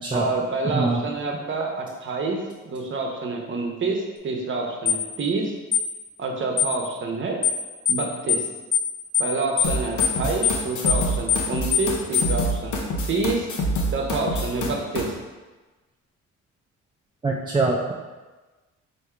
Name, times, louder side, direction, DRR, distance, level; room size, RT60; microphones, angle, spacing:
voice 1, 0.1-5.5 6.2-7.4 7.9-8.5 9.2-13.5 13.9-15.1, right 3 dB, 40° right, 1 dB, 0.8 m, -28 dB
voice 2, 0.6-1.0 17.2-17.9, right 3 dB, 15° right, -2 dB, 0.4 m, -23 dB
sound 1, 4.9-5.0 5.7-5.9 6.6-6.7 7.4-7.6 7.9-8.0 8.3-8.5 8.7-8.9 9.1-9.3 9.6-9.7 10.0-10.2 10.4-10.6 10.9-11.0 11.3-11.5 11.7-11.9 12.1-12.3, left 9 dB, 15° left, 1.1 m, -21 dB
sound 2, 9.6-15.0, equal, 75° left, 0.8 m, -26 dB
3.5 x 2.8 x 4.4 m, 1.2 s
cardioid pair, 90°, 30 cm